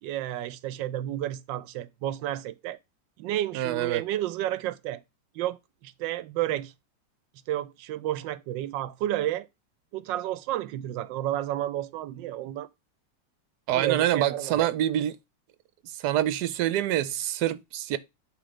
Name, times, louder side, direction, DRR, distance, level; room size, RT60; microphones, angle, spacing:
voice 1, 0.0-2.8 3.2-5.0 5.3-6.7 7.5-9.5 9.9-12.7 13.7-14.7, right 13 dB, 90° right, 1.3 m, -31 dB
voice 2, 3.5-4.0 13.7-15.2 16.0-18.0, right 12 dB, 70° right, 1.2 m, -26 dB
9.4 x 3.8 x 5.0 m
omnidirectional pair, 1.9 m